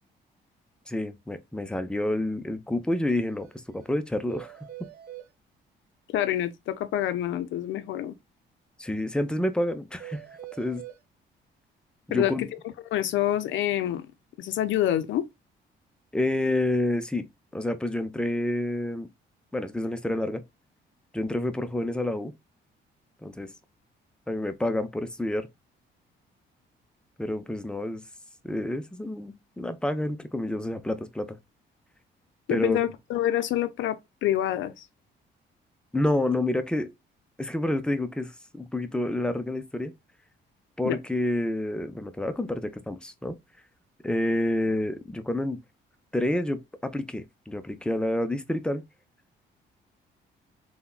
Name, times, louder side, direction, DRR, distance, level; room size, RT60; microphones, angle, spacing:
voice 1, 0.9-3.5 3.7-4.5 8.8-10.2 10.6-10.8 12.1-12.5 16.1-17.3 17.5-19.1 19.5-20.4 21.1-22.3 23.2-23.5 24.3-25.5 27.2-28.0 28.4-31.4 32.5-32.8 35.9-36.9 37.4-39.9 40.8-43.4 44.0-45.6 46.1-48.8, left 1 dB, 5° left, 0.4 m, -28 dB
sound 1, 3.1-3.2 3.4-3.5 3.8-3.9 4.3-5.3 10.0-11.0, right 13 dB, 45° right, 0.7 m, -43 dB
voice 2, 6.1-8.1 12.1-12.5 12.9-14.1 14.4-15.3 32.5-34.9 40.8-41.0, left 12 dB, 75° left, 0.4 m, -27 dB
3.5 x 2.1 x 2.3 m
cardioid pair, 90°, 20 cm